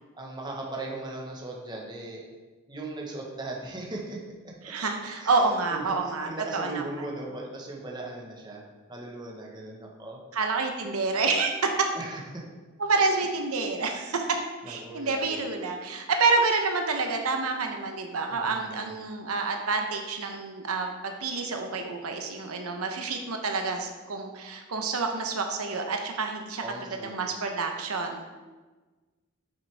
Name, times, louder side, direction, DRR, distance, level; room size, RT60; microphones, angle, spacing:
voice 1, 0.2-2.2 2.7-4.2 4.4-4.9 5.1-5.4 5.7-8.6 8.9-10.2 11.9-12.5 14.6-15.4 18.3-18.9 26.6-27.3, right 2 dB, 20° right, -2 dB, 1.2 m, -38 dB
voice 2, 4.6-7.1 10.3-11.5 11.8-11.9 12.8-14.3 14.7-26.6 26.9-28.3, right 4 dB, 90° right, 4 dB, 0.8 m, -28 dB
8.6 x 6.2 x 3.5 m, 1.3 s
head